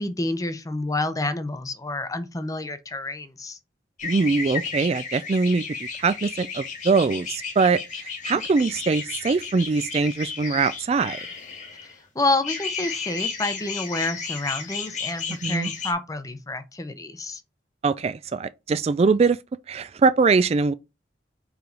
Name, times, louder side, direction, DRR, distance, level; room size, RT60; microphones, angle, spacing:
voice 1, 0.0-3.6 12.1-17.4, left 2 dB, 20° left, 0.7 m, -28 dB
sound 1, 4.0-12.0 12.4-15.9, left 5 dB, 45° left, 1.7 m, -33 dB
voice 2, 4.0-5.6 6.0-11.2 15.4-15.7 17.8-19.4 19.7-20.7, right 4 dB, 35° right, 0.3 m, -22 dB
4.9 x 4.6 x 5.3 m
head